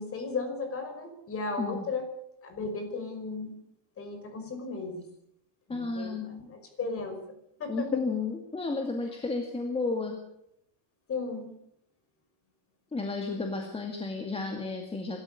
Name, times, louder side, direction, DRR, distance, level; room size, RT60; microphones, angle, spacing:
voice 1, 0.0-2.1 2.4-3.6 4.0-5.1 5.7-7.2 7.6-8.0 11.1-11.5 13.5-13.6, left 4 dB, 30° left, 7 dB, 5.5 m, -35 dB
voice 2, 5.7-6.3 7.7-10.2 12.9-15.2, left 3 dB, 10° left, 3 dB, 2.3 m, -32 dB
26.0 x 13.5 x 8.4 m, 0.76 s
cardioid pair, 165°, 46 cm